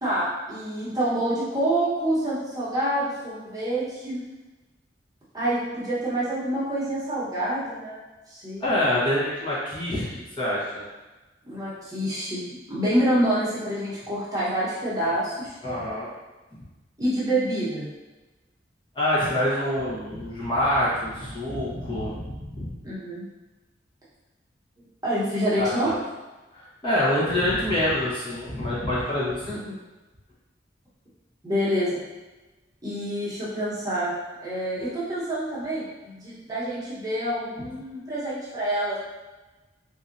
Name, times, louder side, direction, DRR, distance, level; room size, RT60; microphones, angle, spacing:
voice 1, 0.0-4.2 5.3-8.0 8.3-8.6 11.4-12.4 12.7-15.5 17.0-17.9 22.8-23.2 25.0-25.9 29.5-29.6 31.4-32.0 32.8-34.1 34.4-39.0, right 1 dB, 20° right, -9 dB, 1.0 m, -27 dB
voice 2, 8.6-10.1 10.4-10.8 15.6-16.1 18.9-22.7 25.6-26.0 26.6-29.6 37.6-37.7, left 1 dB, 25° left, -8 dB, 1.0 m, -26 dB
4.2 x 2.8 x 2.6 m, 1.1 s
head